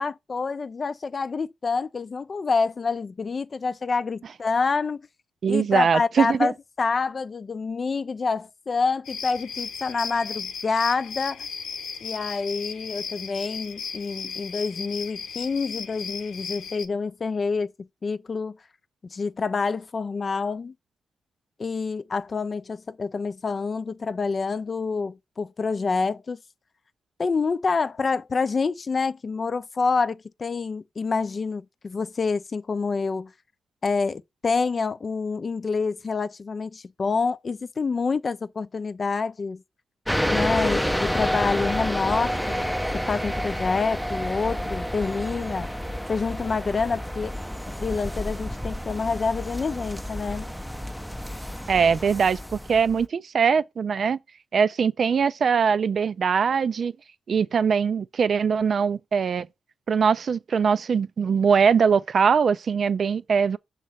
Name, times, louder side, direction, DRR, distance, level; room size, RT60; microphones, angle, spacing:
voice 1, 0.0-5.1 5.5-11.5 12.0-17.7 18.0-18.6 19.1-20.7 21.6-26.4 27.2-33.3 33.8-39.6 40.2-42.7 42.9-45.7 46.1-47.3 47.8-50.5, left 4 dB, 50° left, 0.5 m, -27 dB
voice 2, 5.4-6.5 51.7-54.2 54.5-56.9 57.3-59.5 59.9-63.6, right 6 dB, 60° right, 0.4 m, -22 dB
sound 1, 9.0-16.9, left 6 dB, 80° left, 0.8 m, -35 dB
sound 2, 40.1-53.1, equal, ahead, 0.6 m, -29 dB
6.3 x 3.2 x 5.7 m
supercardioid pair, 50°, 0 cm